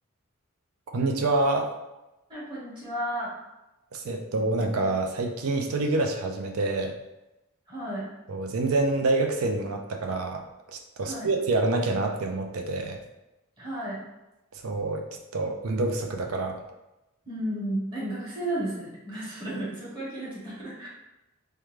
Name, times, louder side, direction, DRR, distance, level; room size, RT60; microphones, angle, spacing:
voice 1, 0.9-1.7 3.9-6.9 8.3-10.4 10.7-13.0 14.6-15.0 15.3-16.6, right 2 dB, 80° right, 3 dB, 0.5 m, -27 dB
voice 2, 2.3-3.3 7.7-8.0 11.0-11.3 13.6-14.0 17.3-20.9, right 1 dB, 20° right, -7 dB, 1.0 m, -33 dB
3.5 x 2.2 x 3.1 m, 0.97 s
head